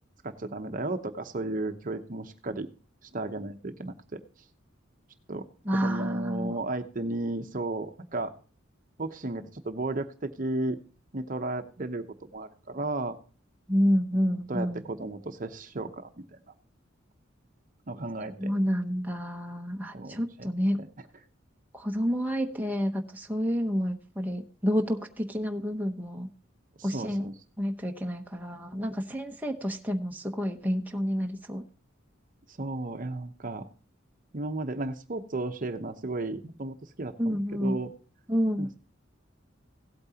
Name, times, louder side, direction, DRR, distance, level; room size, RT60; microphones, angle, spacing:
voice 1, 0.2-2.7 3.0-4.2 5.3-8.3 9.0-10.8 11.1-13.2 14.5-16.2 17.9-18.5 19.9-20.5 20.8-20.9 26.8-27.3 32.6-33.6 34.3-37.9 38.6-38.8, right 2 dB, 40° right, 7 dB, 0.8 m, -34 dB
voice 2, 5.7-6.6 13.7-14.8 18.4-20.8 21.7-26.3 26.8-27.3 27.6-31.6 37.2-37.8 38.3-38.7, equal, 10° right, 2 dB, 0.8 m, -29 dB
16.5 x 8.6 x 2.8 m, 0.36 s
head